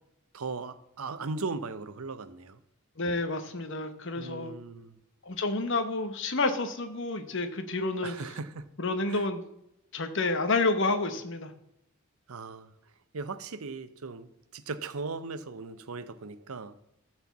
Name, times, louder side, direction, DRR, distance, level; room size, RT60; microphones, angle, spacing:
voice 1, 0.3-2.6 4.2-5.0 8.0-8.7 9.1-9.3 12.3-16.7, right 4 dB, 75° right, 13 dB, 0.7 m, -38 dB
voice 2, 3.0-4.5 5.2-8.2 8.8-9.4 9.9-11.5, left 3 dB, 55° left, 8 dB, 1.0 m, -29 dB
13.0 x 4.5 x 7.1 m, 0.79 s
head